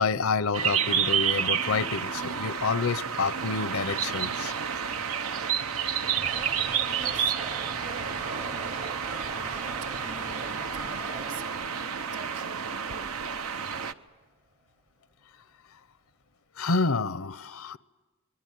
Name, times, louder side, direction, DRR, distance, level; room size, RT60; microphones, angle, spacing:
voice 1, 0.0-4.5 16.6-17.8, left 4 dB, 80° left, 0.8 m, -28 dB
sound 1, 0.5-13.9, right 7 dB, 85° right, 0.9 m, -30 dB
sound 2, 5.2-13.2, right 4 dB, 35° right, 1.0 m, -43 dB
voice 2, 6.3-7.4 7.8-13.1, right 4 dB, 55° right, 1.7 m, -45 dB
27.0 x 22.0 x 9.4 m
head